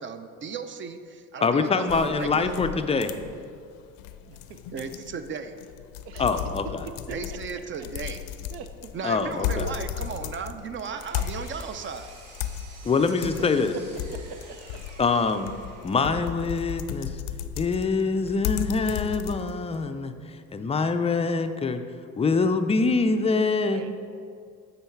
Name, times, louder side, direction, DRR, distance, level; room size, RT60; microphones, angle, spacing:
voice 1, 0.0-2.8 4.7-5.6 7.1-8.2 8.9-12.1, right 5 dB, 35° right, 9 dB, 0.5 m, -35 dB
voice 2, 1.4-3.1 6.2-6.8 9.0-9.7 12.8-13.7 15.0-15.5 15.8-17.2 17.6-21.8 22.2-23.8, left 4 dB, 20° left, 8 dB, 0.4 m, -24 dB
sound 1, 1.9-19.8, left 10 dB, 85° left, 0.5 m, -35 dB
voice 3, 4.3-4.6 5.0-5.1 6.0-6.2 7.8-7.9 8.5-8.9 13.0-13.2 23.7-23.9, right 7 dB, 85° right, 8 dB, 0.7 m, -43 dB
Engine, 10.6-16.3, right 3 dB, 60° right, 1.4 m, -50 dB
9.0 x 3.9 x 4.5 m, 2.3 s
supercardioid pair, 90°, 35 cm